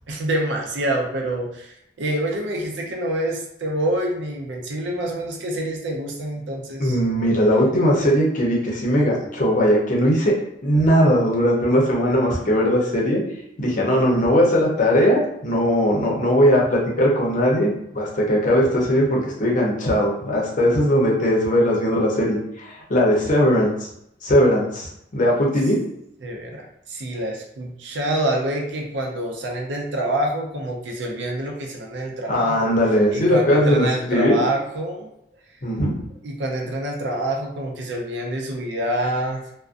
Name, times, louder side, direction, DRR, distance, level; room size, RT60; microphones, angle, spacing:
voice 1, 0.1-7.0 12.4-12.6 26.2-32.7 33.1-35.1 36.2-39.4, right 1 dB, 80° right, 0 dB, 0.5 m, -26 dB
voice 2, 6.8-10.3 10.6-13.2 13.6-23.7 24.2-25.8 32.3-34.4 35.6-35.9, equal, 45° left, -2 dB, 0.7 m, -19 dB
2.4 x 2.1 x 2.4 m, 0.77 s
head